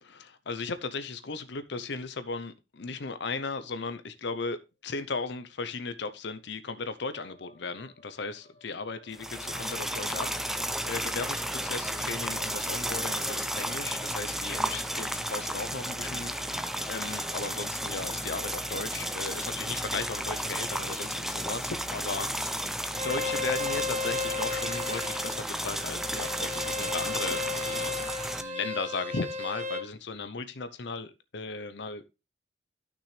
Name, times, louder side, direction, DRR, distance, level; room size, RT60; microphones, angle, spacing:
voice 1, 0.0-16.6 16.9-22.3 23.0-28.0 28.3-32.0, left 4 dB, 65° left, 0.7 m, -36 dB
sound 1, 7.0-19.8, left 1 dB, 45° left, 2.9 m, -55 dB
sound 2, 9.1-28.4, right 1 dB, ahead, 0.6 m, -33 dB
Bowed string instrument, 22.9-29.9, left 3 dB, 40° right, 1.3 m, -34 dB
11.5 x 6.1 x 3.2 m
head